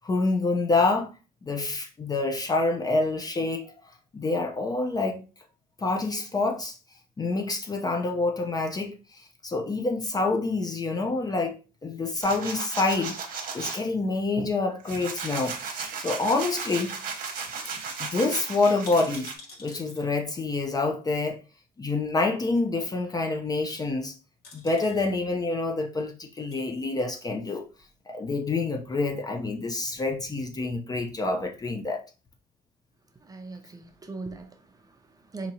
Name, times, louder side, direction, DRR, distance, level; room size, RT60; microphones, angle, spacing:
voice 1, 0.0-1.1 1.4-3.7 4.1-5.2 5.8-6.8 7.2-13.1 13.5-17.0 18.0-19.3 19.6-21.4 21.8-24.1 24.5-27.7 28.1-32.0, left 3 dB, 20° left, 0.5 m, -27 dB
sound 1, 12.2-13.8 14.3-19.4, right 5 dB, 55° right, 1.0 m, -35 dB
sound 2, 18.8-20.1 21.2-21.3 23.9-24.1 24.4-25.1 26.2-26.6 27.3-28.0 28.2-28.3, left 3 dB, 65° left, 1.4 m, -48 dB
voice 2, 33.2-35.5, right 3 dB, 20° right, 0.6 m, -40 dB
4.0 x 2.8 x 2.7 m
cardioid pair, 110°, 17 cm